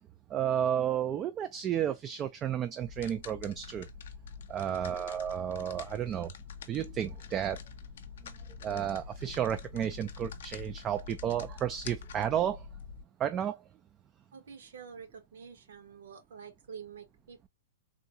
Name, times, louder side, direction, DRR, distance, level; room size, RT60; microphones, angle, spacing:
voice 1, 0.3-3.9 4.5-6.3 6.7-7.6 8.6-12.7 13.2-13.6, right 10 dB, 20° right, 0.3 m, -32 dB
sound 1, 2.8-13.0, left 6 dB, 70° left, 0.6 m, -46 dB
voice 2, 4.6-5.1 14.3-17.5, right 6 dB, 75° right, 1.6 m, -48 dB
3.7 x 2.3 x 2.6 m
hypercardioid pair, 150°, 0 cm